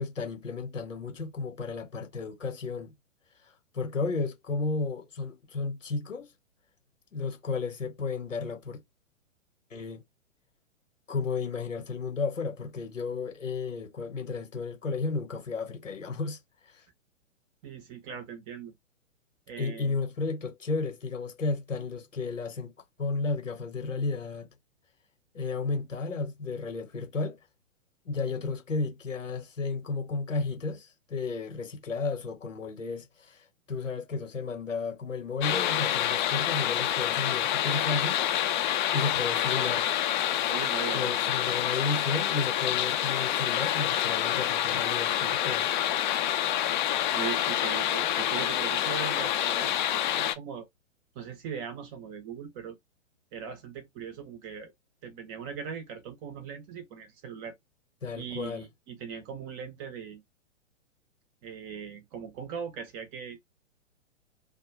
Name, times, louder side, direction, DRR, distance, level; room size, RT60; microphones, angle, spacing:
voice 1, 0.0-2.9 3.4-6.3 7.1-8.8 9.7-10.0 11.1-16.4 16.6-16.8 19.6-22.7 23.0-24.5 25.3-27.4 28.0-38.2 38.9-39.9 40.9-45.7 58.0-58.7, left 4 dB, 85° left, 1.1 m, -33 dB
voice 2, 17.6-18.7 19.5-20.0 40.5-41.4 47.1-50.7 51.2-52.8 53.3-54.7 55.0-57.5 58.1-60.2 61.4-63.4, right 7 dB, 25° right, 0.6 m, -39 dB
sound 1, 35.4-50.3, left 11 dB, 40° left, 0.5 m, -27 dB
2.2 x 2.2 x 3.0 m
figure-of-eight pair, 115°, 37 cm